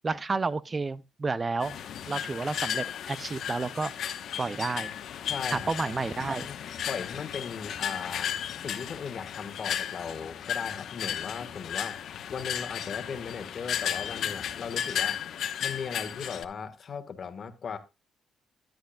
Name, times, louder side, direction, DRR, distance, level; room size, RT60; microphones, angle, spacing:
voice 1, 0.0-1.8 2.1-3.9 4.4-4.9 5.5-6.5, right 3 dB, 30° right, 0.4 m, -31 dB
sound 1, 1.6-16.4, left 9 dB, 70° left, 1.0 m, -34 dB
voice 2, 5.2-5.7 6.4-6.6 6.9-12.0 12.3-15.2 15.6-17.8, left 6 dB, 50° left, 1.5 m, -38 dB
13.0 x 10.5 x 2.3 m
cardioid pair, 90°, 0 cm